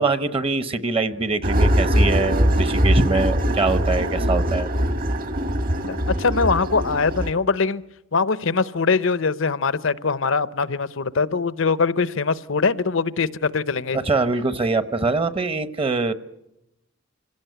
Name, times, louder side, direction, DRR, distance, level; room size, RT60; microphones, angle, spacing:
voice 1, 0.0-4.7 13.9-16.1, right 3 dB, 30° right, 12 dB, 0.9 m, -23 dB
sound 1, 1.4-7.3, equal, 45° right, 1.5 m, -21 dB
voice 2, 5.8-7.8 8.1-14.0, left 4 dB, 70° left, 16 dB, 0.8 m, -22 dB
26.0 x 17.0 x 9.2 m, 0.90 s
head